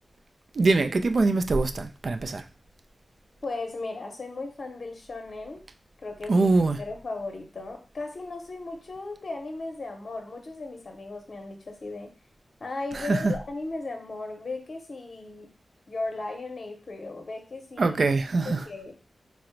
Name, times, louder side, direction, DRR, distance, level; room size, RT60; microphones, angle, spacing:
voice 1, 0.5-2.4 6.3-6.8 12.9-13.4 17.8-18.6, right 3 dB, 60° right, 0.3 m, -23 dB
voice 2, 3.4-5.6 6.0-12.1 12.6-15.5 15.9-18.0 18.4-18.9, left 3 dB, 55° left, 0.7 m, -36 dB
3.8 x 2.0 x 4.4 m
wide cardioid pair, 105°, 0 cm